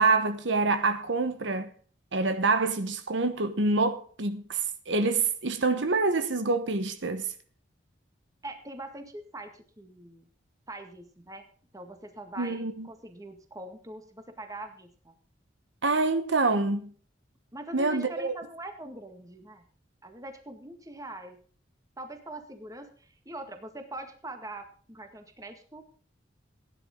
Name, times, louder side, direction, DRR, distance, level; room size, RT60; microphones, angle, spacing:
voice 1, 0.0-1.7 2.1-7.3 12.4-12.9 15.8-16.9 17.7-18.3, right 3 dB, 70° right, 1.2 m, -26 dB
voice 2, 8.4-10.3 10.7-11.4 11.7-15.1 17.5-19.6 20.0-21.4 22.0-25.8, right 1 dB, 20° right, 1.9 m, -43 dB
16.0 x 10.5 x 3.8 m
head